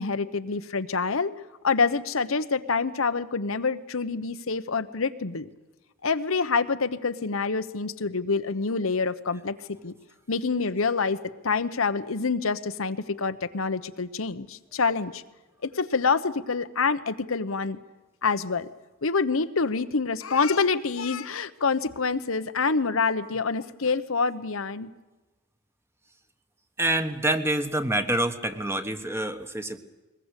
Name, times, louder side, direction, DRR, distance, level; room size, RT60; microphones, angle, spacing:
voice 1, 0.0-1.3 1.6-5.5 6.0-9.9 10.3-15.2 15.6-17.8 18.2-18.7 19.0-24.9, left 4 dB, 85° left, 11 dB, 1.0 m, -26 dB
voice 2, 26.8-29.8, right 1 dB, 15° right, 8 dB, 1.4 m, -26 dB
21.5 x 20.5 x 8.3 m, 1.2 s
head